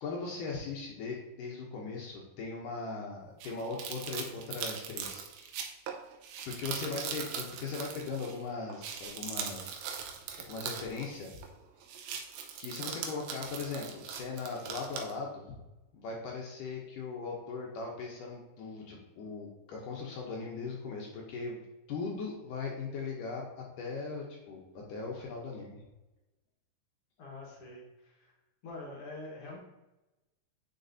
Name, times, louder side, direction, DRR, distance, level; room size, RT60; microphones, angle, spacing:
voice 1, 0.0-5.3 6.5-9.9 10.5-11.3 12.6-15.6 15.9-21.6 21.9-25.8, left 4 dB, 70° left, -1 dB, 2.2 m, -39 dB
sound 1, 3.4-8.4 8.7-11.5 11.8-15.1, right 7 dB, 85° right, 2.6 m, -40 dB
voice 2, 6.7-7.2 27.2-28.3 28.6-29.6, left 2 dB, 55° left, -3 dB, 1.6 m, -45 dB
9.1 x 4.5 x 2.7 m, 1.0 s
omnidirectional pair, 4.3 m